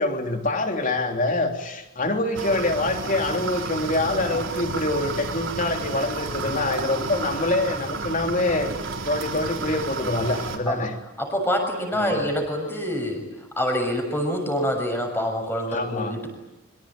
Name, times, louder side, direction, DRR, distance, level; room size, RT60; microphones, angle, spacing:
voice 1, 0.0-10.9 11.9-12.3 15.7-16.1, left 2 dB, 35° left, 4 dB, 3.2 m, -25 dB
sound 1, 2.3-10.6, right 3 dB, 60° right, 3.9 m, -31 dB
voice 2, 11.2-13.2 13.6-16.3, equal, 10° left, 4 dB, 6.6 m, -26 dB
26.5 x 24.5 x 9.0 m, 1.1 s
head